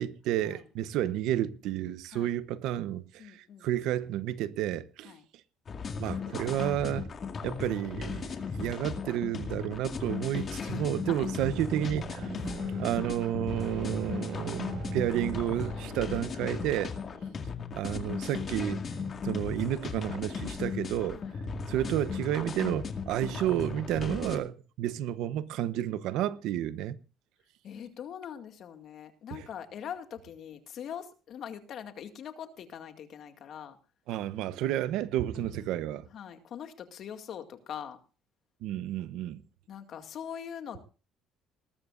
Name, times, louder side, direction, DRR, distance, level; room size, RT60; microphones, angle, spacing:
voice 1, 0.0-5.1 6.0-7.1 7.4-12.3 12.8-16.9 17.7-18.9 19.2-21.2 21.7-27.0 29.3-29.5 34.1-36.1 38.6-39.4, right 12 dB, 80° right, 0.8 m, -31 dB
voice 2, 3.2-3.7 5.0-5.2 10.6-10.8 11.1-11.3 12.5-12.6 15.7-16.3 16.9-17.4 21.2-21.4 27.6-33.8 35.4-35.8 36.1-38.0 39.7-40.8, left 8 dB, 60° left, 2.1 m, -43 dB
sound 1, 5.7-24.4, left 5 dB, 40° left, 2.0 m, -36 dB
sound 2, 11.3-16.9, right 5 dB, 55° right, 6.4 m, -40 dB
19.5 x 13.0 x 2.5 m
cardioid pair, 105°, 0 cm